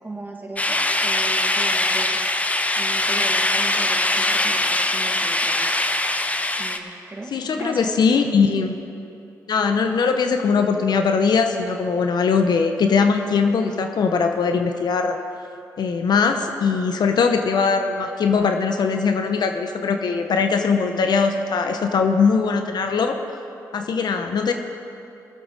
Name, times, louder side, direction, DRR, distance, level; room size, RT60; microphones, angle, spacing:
voice 1, 0.0-2.2 2.8-5.9 6.6-7.9, right 2 dB, 25° right, 1 dB, 2.1 m, -36 dB
sound 1, 0.6-6.8, left 2 dB, 20° left, 0.8 m, -22 dB
voice 2, 7.3-8.8 9.5-15.2 15.8-23.2 23.7-24.5, left 5 dB, 65° left, 6 dB, 0.9 m, -20 dB
19.0 x 7.9 x 4.0 m, 2.7 s
supercardioid pair, 50°, 8 cm